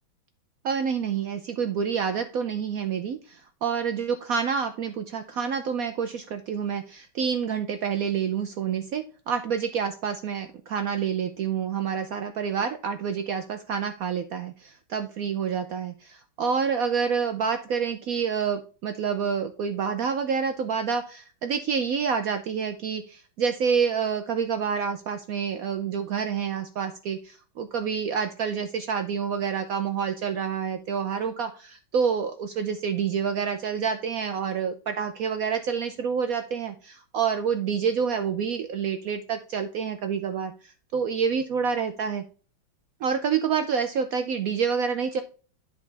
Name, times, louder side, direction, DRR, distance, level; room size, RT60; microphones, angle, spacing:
voice 1, 0.6-40.5 40.9-42.2 43.0-45.2, right 6 dB, 85° right, 8 dB, 0.7 m, -28 dB
10.5 x 4.2 x 3.3 m, 0.38 s
omnidirectional pair, 2.2 m